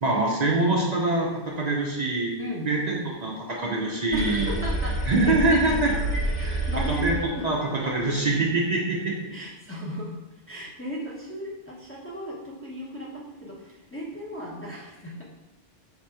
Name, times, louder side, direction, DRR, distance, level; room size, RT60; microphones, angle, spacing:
voice 1, 0.0-4.5 5.1-6.6 6.9-7.2 7.4-9.2, right 2 dB, 50° right, -2 dB, 0.7 m, -25 dB
voice 2, 2.4-3.1 4.1-5.2 5.5-5.6 6.4-7.5 9.3-10.2 10.5-15.2, equal, 15° left, -5 dB, 0.6 m, -36 dB
sound 1, 4.1-7.7, right 1 dB, 85° right, 1.3 m, -29 dB
3.6 x 2.9 x 4.7 m, 1.1 s
omnidirectional pair, 1.0 m